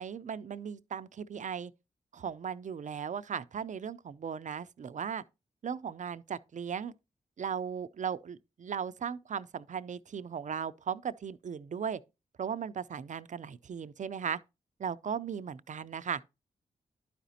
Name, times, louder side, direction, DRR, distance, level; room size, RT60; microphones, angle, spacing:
voice 1, 0.0-1.7 2.1-5.2 5.6-6.9 7.4-12.0 12.4-14.4 14.8-16.2, right 7 dB, 50° right, 0.5 m, -37 dB
11.0 x 5.0 x 2.7 m
supercardioid pair, 45°, 16 cm